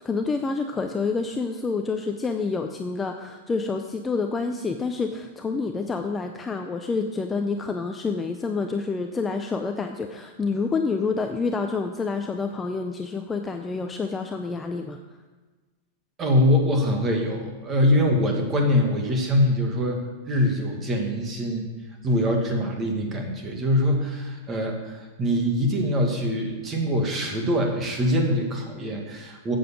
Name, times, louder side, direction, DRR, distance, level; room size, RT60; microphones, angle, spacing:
voice 1, 0.0-15.0, left 4 dB, 10° left, 5 dB, 0.5 m, -28 dB
voice 2, 16.2-20.0 20.3-21.7 22.0-29.6, left 1 dB, 20° right, 2 dB, 1.7 m, -23 dB
9.0 x 7.8 x 7.2 m, 1.3 s
supercardioid pair, 160°, 0 cm